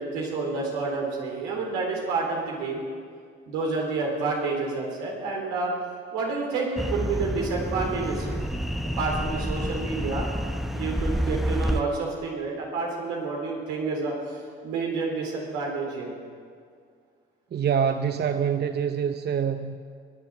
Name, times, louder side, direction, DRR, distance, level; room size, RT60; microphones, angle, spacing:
voice 1, 0.0-2.8 3.5-5.7 6.1-8.4 9.0-10.3 10.7-16.1, right 3 dB, 75° right, -1 dB, 3.8 m, -29 dB
sound 1, 6.8-11.8, equal, ahead, 0.9 m, -29 dB
voice 2, 17.5-19.8, right 7 dB, 35° right, 9 dB, 0.8 m, -25 dB
21.0 x 10.5 x 6.3 m, 2.1 s
hypercardioid pair, 50°, 29 cm